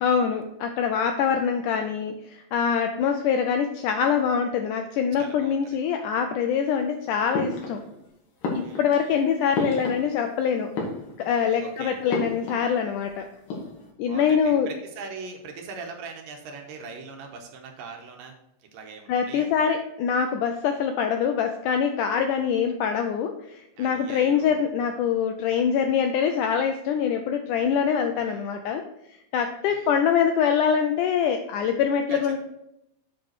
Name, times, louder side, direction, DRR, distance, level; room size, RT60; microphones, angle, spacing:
voice 1, 0.0-7.8 8.5-10.7 11.2-13.2 14.0-14.7 19.1-28.8 29.3-32.4, left 7 dB, 80° left, 6 dB, 1.8 m, -24 dB
voice 2, 5.2-5.8 8.6-9.1 11.6-12.0 14.0-18.3 18.6-19.5 23.8-24.7 28.2-28.6 29.7-30.0 32.1-32.4, right 4 dB, 75° right, 3 dB, 2.5 m, -41 dB
sound 1, 7.3-8.1 8.4-10.4 10.6-11.5 12.1-13.1 13.3-13.9, left 2 dB, 65° left, 3.0 m, -32 dB
7.7 x 5.2 x 4.5 m, 0.80 s
omnidirectional pair, 4.1 m